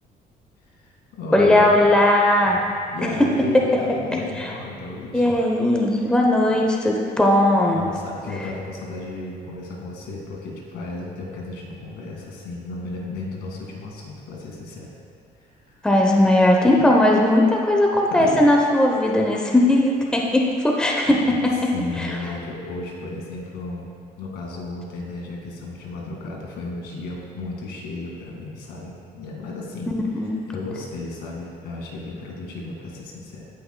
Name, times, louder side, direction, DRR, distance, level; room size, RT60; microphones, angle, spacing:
voice 1, 0.7-1.9 2.4-5.3 7.7-14.9 15.4-15.8 18.1-18.4 21.1-21.4 21.7-23.9 24.2-29.9 30.5-33.4, left 2 dB, 75° left, -2 dB, 2.0 m, -34 dB
voice 2, 1.3-2.6 3.2-3.3 3.7-3.8 4.1-4.5 5.1-7.8 15.8-21.5 22.0-22.1 30.1-30.3, left 1 dB, 5° left, -1 dB, 0.8 m, -18 dB
16.5 x 5.7 x 2.2 m, 2.4 s
cardioid pair, 110°, 17 cm